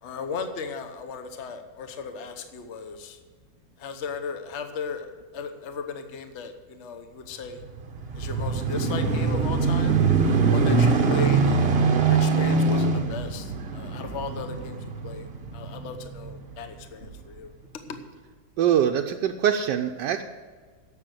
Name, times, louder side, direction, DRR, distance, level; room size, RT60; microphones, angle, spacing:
voice 1, 0.0-3.2 3.8-5.1 5.3-7.6 8.1-11.7 12.1-14.8 15.0-17.5 17.9-18.0, left 5 dB, 45° left, 7 dB, 1.1 m, -36 dB
sound 1, 7.6-16.4 17.0-17.2, right 4 dB, 45° right, 0.9 m, -23 dB
voice 2, 18.6-20.2, right 9 dB, 80° right, 3 dB, 1.3 m, -23 dB
11.0 x 7.5 x 7.9 m, 1.5 s
omnidirectional pair, 2.0 m